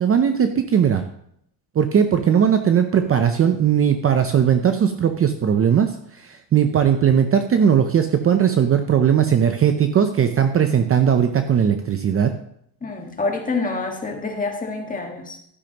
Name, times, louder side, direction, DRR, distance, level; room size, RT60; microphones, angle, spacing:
voice 1, 0.0-1.0 1.7-12.3, right 8 dB, 30° right, 7 dB, 0.6 m, -18 dB
voice 2, 12.8-15.4, left 3 dB, 20° left, 2 dB, 1.6 m, -27 dB
12.5 x 10.5 x 3.0 m, 0.71 s
cardioid pair, 145°, 45 cm